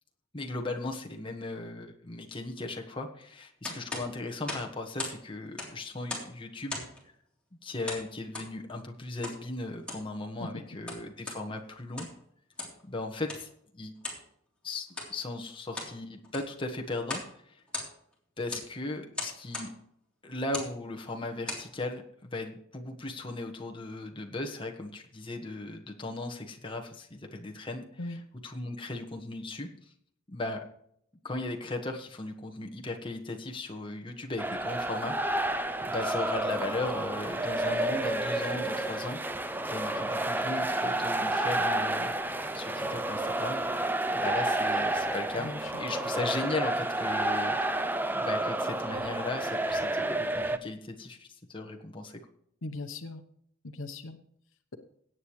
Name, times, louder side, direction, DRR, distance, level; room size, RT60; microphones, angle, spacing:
voice 1, 0.3-6.8 7.6-12.1 12.8-13.9 14.6-17.6 18.4-19.7 20.2-29.7 30.3-30.6 31.2-43.6 44.1-45.5 45.8-47.8 48.1-52.2, left 2 dB, 25° left, 2 dB, 1.4 m, -37 dB
sound 1, 3.6-5.2 5.5-6.4 6.7-7.0 7.9-8.5 9.2-9.4 9.8-10.1 10.7-11.4 11.8-12.2 12.6-12.8 13.3-13.5 14.0-14.2 14.9-15.1 15.5-16.0 16.2-16.6 17.0-17.3 17.6-18.1 18.5-18.7 19.1-19.7 20.4-20.7 21.2-21.7, left 2 dB, 5° left, 3.4 m, -38 dB
sound 2, 34.4-50.6, right 1 dB, 10° right, 0.5 m, -30 dB
voice 2, 45.4-45.8 52.6-53.2 53.6-54.2, left 2 dB, 75° left, 7 dB, 1.0 m, -39 dB
17.5 x 8.7 x 3.2 m, 0.68 s
head